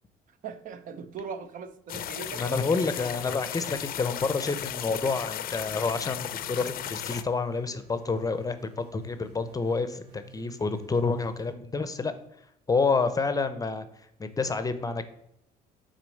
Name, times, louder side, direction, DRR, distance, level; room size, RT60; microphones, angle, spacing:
voice 1, 0.4-2.9, right 6 dB, 50° right, 0.6 m, -40 dB
sound 1, 1.9-7.2, left 11 dB, 60° left, 0.5 m, -35 dB
voice 2, 2.3-12.1 12.7-13.9 14.2-15.0, left 4 dB, 20° left, 0.6 m, -28 dB
sound 2, 6.4-11.5, right 8 dB, 85° right, 1.5 m, -53 dB
6.1 x 4.2 x 6.4 m
cardioid pair, 110°, 17 cm